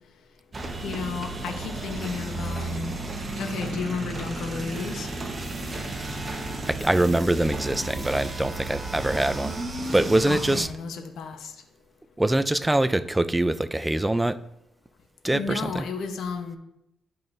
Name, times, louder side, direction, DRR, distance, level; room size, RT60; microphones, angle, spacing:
sound 1, 0.5-10.6, right 2 dB, 30° right, 1.1 m, -33 dB
voice 1, 0.8-3.0 3.4-5.1 10.3-11.5 15.3-16.6, left 5 dB, 75° left, 6 dB, 0.9 m, -33 dB
voice 2, 6.7-9.5 9.9-10.7 12.2-14.4 15.2-15.8, right 1 dB, 10° right, 13 dB, 0.4 m, -23 dB
10.5 x 5.5 x 2.7 m, 0.84 s
cardioid pair, 90°, 0 cm